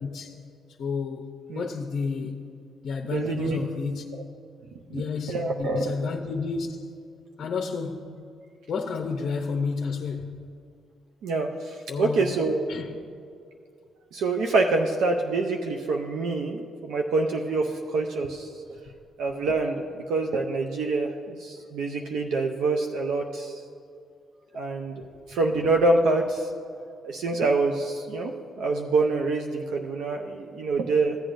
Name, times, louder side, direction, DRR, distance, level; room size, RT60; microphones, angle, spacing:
voice 1, 0.0-0.4 0.8-1.3 1.5-2.4 2.8-4.0 4.9-6.9 7.4-8.1 8.7-10.4 11.9-12.4 12.7-12.9, left 5 dB, 55° left, 0.6 m, -31 dB
voice 2, 3.0-3.6 4.9-5.0 5.3-5.9 11.2-12.7 14.1-18.5 19.2-23.6 24.5-26.5 27.0-31.2, right 3 dB, 80° right, 0.6 m, -26 dB
15.0 x 8.1 x 2.6 m
cardioid pair, 90°, 0 cm